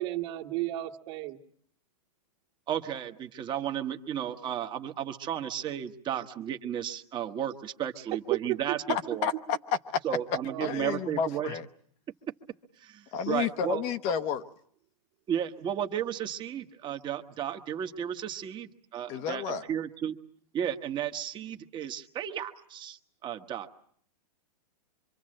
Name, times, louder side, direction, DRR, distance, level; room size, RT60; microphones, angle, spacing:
voice 1, 0.0-1.4 8.5-8.8 10.5-11.0, right 16 dB, 45° right, 1.9 m, -34 dB
voice 2, 2.7-9.3 10.0-11.6 12.8-13.8 15.3-20.2 20.5-23.7, right 10 dB, 25° right, 1.3 m, -34 dB
voice 3, 8.9-10.0 10.6-11.7 13.1-14.4 19.1-19.6, left 7 dB, 35° left, 1.0 m, -31 dB
25.5 x 24.0 x 7.7 m
hypercardioid pair, 140°, 19 cm